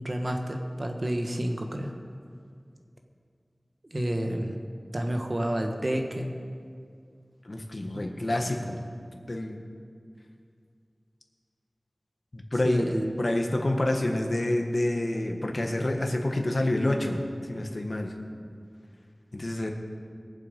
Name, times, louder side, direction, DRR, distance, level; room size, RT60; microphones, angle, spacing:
voice 1, 0.0-2.0 3.9-4.6 4.9-6.4 7.9-8.0 12.6-13.2, right 1 dB, 45° right, 3 dB, 1.5 m, -30 dB
voice 2, 7.4-8.8 9.3-9.6 12.3-12.9 13.2-18.1 19.3-19.7, left 1 dB, 55° left, 2 dB, 1.6 m, -28 dB
22.0 x 7.6 x 5.2 m, 2.2 s
wide cardioid pair, 55°, 0 cm